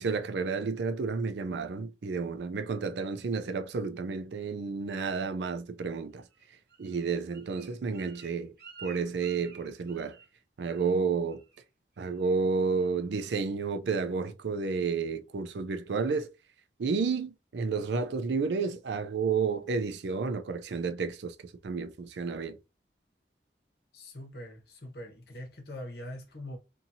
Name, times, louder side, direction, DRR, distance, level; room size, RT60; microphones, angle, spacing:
voice 1, 0.0-6.2 6.8-8.5 8.8-10.2 10.6-11.4 12.0-16.3 16.8-21.3 21.6-22.6, right 4 dB, 80° right, 0.4 m, -31 dB
Bird, 6.3-10.4 10.6-11.0 11.3-11.6 12.0-12.4 12.8-12.9, right 5 dB, 65° right, 0.9 m, -52 dB
voice 2, 23.9-26.6, left 1 dB, 70° left, 0.9 m, -43 dB
2.7 x 2.7 x 2.7 m
head